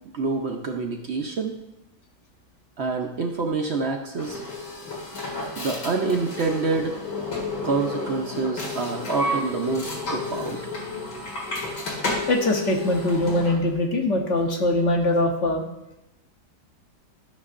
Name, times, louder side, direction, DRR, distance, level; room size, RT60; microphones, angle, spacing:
voice 1, 0.1-1.5 2.8-4.4 5.6-6.9 7.6-10.7, right 4 dB, 60° right, 2 dB, 0.7 m, -27 dB
sound 1, 4.2-13.6, left 2 dB, 80° left, 2.5 m, -31 dB
voice 2, 12.3-15.6, left 1 dB, 50° left, 2 dB, 1.2 m, -22 dB
12.5 x 6.2 x 2.5 m, 0.87 s
omnidirectional pair, 1.8 m